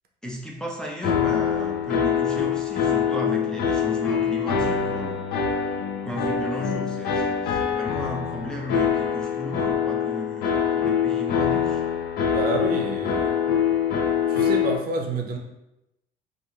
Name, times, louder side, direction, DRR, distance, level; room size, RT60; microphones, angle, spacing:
voice 1, 0.2-5.2 6.0-11.8, left 1 dB, 5° left, -2 dB, 0.5 m, -34 dB
sound 1, 1.0-14.8, left 7 dB, 70° left, 0.5 m, -24 dB
voice 2, 12.3-13.4 14.3-15.4, right 3 dB, 60° right, 2 dB, 0.5 m, -28 dB
2.4 x 2.3 x 2.9 m, 0.89 s
cardioid pair, 110°, 17 cm